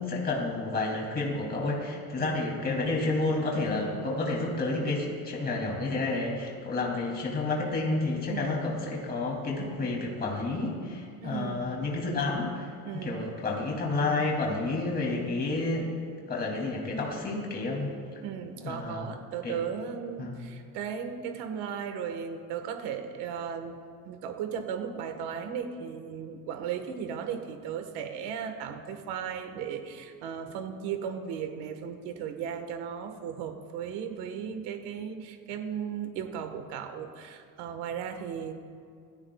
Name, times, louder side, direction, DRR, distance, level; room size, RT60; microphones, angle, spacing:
voice 1, 0.0-15.9 16.3-18.0 18.6-19.1 19.4-19.6 20.2-20.4, left 2 dB, 25° left, -1 dB, 2.9 m, -30 dB
voice 2, 2.2-2.6 8.3-8.7 11.2-11.7 12.8-13.4 18.2-23.8 24.0-38.5, right 7 dB, 80° right, 6 dB, 1.6 m, -36 dB
26.0 x 17.5 x 2.4 m, 2.3 s
cardioid pair, 160°, 40 cm